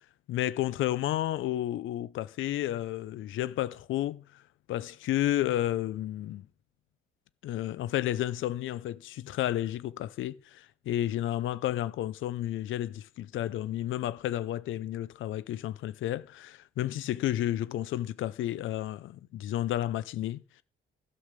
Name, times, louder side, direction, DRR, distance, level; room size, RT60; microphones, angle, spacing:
voice 1, 0.3-4.2 4.7-6.5 7.4-20.6, left 13 dB, 80° left, 0.7 m, -31 dB
11.5 x 5.5 x 7.6 m
cardioid pair, 90°, 20 cm